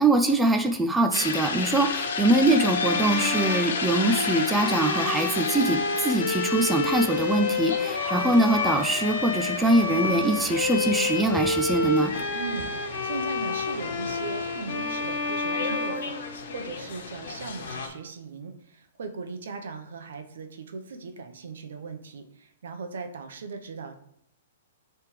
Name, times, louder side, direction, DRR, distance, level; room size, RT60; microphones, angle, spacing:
voice 1, 0.0-12.1, right 2 dB, 5° right, 5 dB, 0.3 m, -23 dB
sound 1, 1.1-17.9, left 4 dB, 70° left, 1.2 m, -33 dB
Bowed string instrument, 2.7-16.8, left 3 dB, 45° left, 1.1 m, -29 dB
sound 2, 10.0-13.2, left 3 dB, 25° left, 0.9 m, -44 dB
voice 2, 12.3-16.2 16.5-23.9, right 4 dB, 75° right, 6 dB, 0.8 m, -38 dB
9.0 x 3.4 x 3.2 m, 0.76 s
hypercardioid pair, 165°, 0 cm